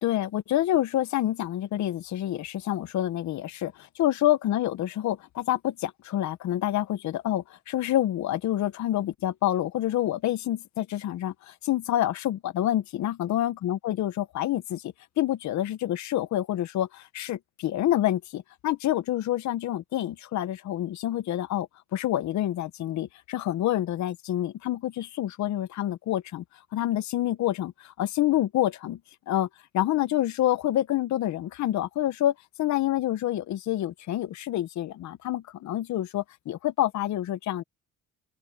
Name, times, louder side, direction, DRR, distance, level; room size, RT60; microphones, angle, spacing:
voice 1, 0.0-26.4 26.7-29.0 29.3-29.5 29.7-37.6, left 13 dB, 65° left, 0.9 m, -27 dB
open air
cardioid pair, 125°, 30 cm